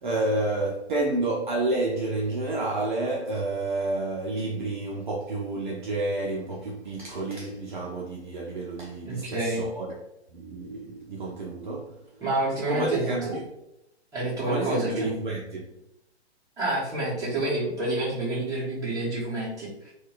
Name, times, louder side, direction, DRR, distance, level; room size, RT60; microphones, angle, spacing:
voice 1, 0.0-9.9 10.3-12.0 12.7-13.4 14.4-15.7, right 2 dB, 45° right, 0.6 m, -30 dB
voice 2, 9.0-9.6 12.2-13.4 14.1-15.2 16.6-19.9, right 1 dB, 10° right, 1.1 m, -28 dB
4.4 x 2.2 x 2.4 m
figure-of-eight pair, 125°, 34 cm